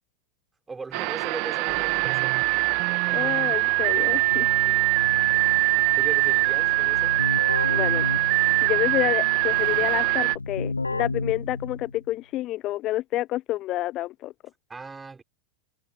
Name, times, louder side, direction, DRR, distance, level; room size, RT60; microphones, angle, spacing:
voice 1, 0.7-2.4 3.1-3.4 4.6-4.8 5.9-7.2 14.7-15.2, right 4 dB, 10° right, 4.0 m, -38 dB
sound 1, 0.9-10.4, right 36 dB, 45° right, 2.1 m, -23 dB
voice 2, 3.1-4.5 7.7-8.1 8.6-14.3, left 15 dB, 35° left, 0.7 m, -29 dB
Keyboard (musical), 3.8-12.1, left 3 dB, 80° left, 0.8 m, -33 dB
figure-of-eight pair, 90°, 0 cm